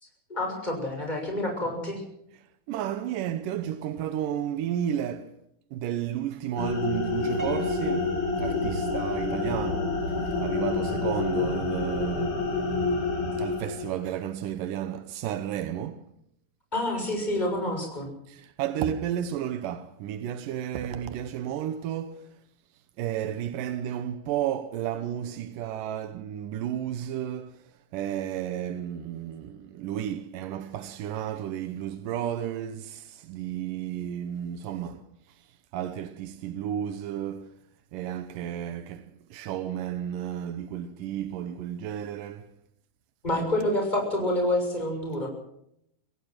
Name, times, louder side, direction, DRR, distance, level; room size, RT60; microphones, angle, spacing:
voice 1, 0.3-2.0 16.7-18.1 43.2-45.3, left 1 dB, 10° left, 6.7 m, -28 dB
voice 2, 2.4-5.4 5.7-12.4 13.4-16.1 18.3-22.3 23.0-27.6 27.9-37.6 37.9-42.5, right 10 dB, 85° right, 2.6 m, -33 dB
sound 1, 6.6-14.1, left 3 dB, 65° left, 6.4 m, -28 dB
Piano, 7.4-9.6, right 5 dB, 30° right, 1.5 m, -41 dB
25.5 x 17.0 x 6.1 m
omnidirectional pair, 3.8 m